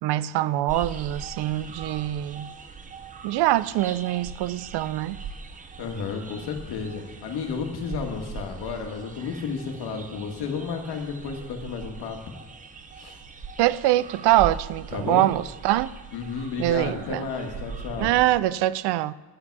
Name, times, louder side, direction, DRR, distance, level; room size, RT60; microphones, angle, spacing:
voice 1, 0.0-2.5 3.2-5.2 13.6-15.9 16.6-17.2 18.0-19.1, right 15 dB, 90° right, 0.5 m, -24 dB
sound 1, 0.7-18.4, right 5 dB, 20° right, 0.6 m, -41 dB
voice 2, 5.8-12.2 13.0-13.2 14.9-15.3 16.1-18.1, left 5 dB, 80° left, 1.9 m, -32 dB
11.0 x 9.5 x 4.7 m
cardioid pair, 175°, 39 cm